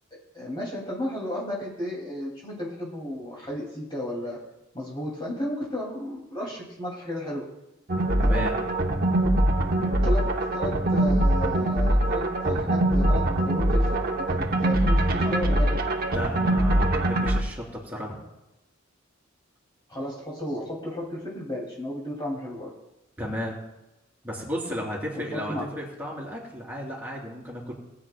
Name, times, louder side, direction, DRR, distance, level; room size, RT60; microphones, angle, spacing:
voice 1, 0.1-4.4 4.7-7.5 8.2-8.5 9.8-15.8 19.9-22.7 25.2-25.7, left 1 dB, 25° left, -5 dB, 2.5 m, -33 dB
sound 1, 7.9-17.4, right 1 dB, 50° right, 0.9 m, -23 dB
voice 2, 8.2-8.5 16.1-18.2 23.2-23.6 24.2-27.7, equal, 10° right, -4 dB, 3.4 m, -34 dB
20.5 x 8.7 x 2.2 m, 0.96 s
head